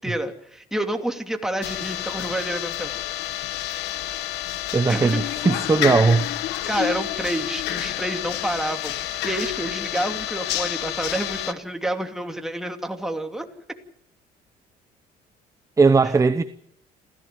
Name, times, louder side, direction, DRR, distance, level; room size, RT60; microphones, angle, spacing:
voice 1, 0.0-2.9 4.9-5.3 6.7-13.5, right 1 dB, 5° right, 2.8 m, -29 dB
sound 1, 1.6-11.5, left 14 dB, 85° left, 1.3 m, -29 dB
voice 2, 4.7-6.3 15.8-16.4, right 4 dB, 20° right, 0.9 m, -18 dB
27.5 x 15.5 x 7.8 m
cardioid pair, 110°, 17 cm